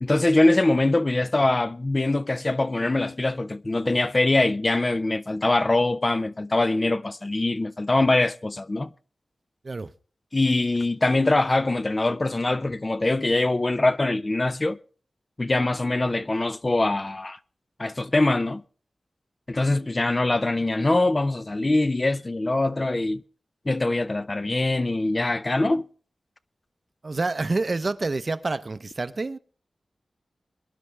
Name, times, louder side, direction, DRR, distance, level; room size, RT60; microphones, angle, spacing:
voice 1, 0.0-8.9 10.3-14.8 15.4-17.4 17.8-18.6 19.5-23.2 23.7-25.8, left 2 dB, 30° left, 0.5 m, -23 dB
voice 2, 27.0-29.4, right 3 dB, 40° right, 0.7 m, -27 dB
24.0 x 11.0 x 3.4 m
wide cardioid pair, 115°, 0 cm